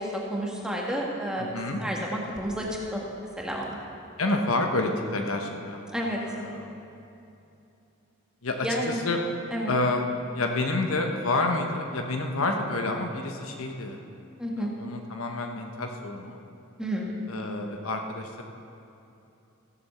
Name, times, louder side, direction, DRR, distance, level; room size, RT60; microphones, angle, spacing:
voice 1, 0.0-3.0 3.4-3.8 5.9-6.2 8.6-9.0 9.5-9.7 14.4-14.7 16.8-17.1, equal, 5° right, -2 dB, 1.5 m, -30 dB
voice 2, 1.4-1.8 4.2-5.8 6.2-6.8 8.4-9.2 9.7-10.0 10.3-14.0 14.6-16.4 17.3-18.4, left 2 dB, 75° left, 3 dB, 1.1 m, -29 dB
15.0 x 7.4 x 6.8 m, 2.8 s
head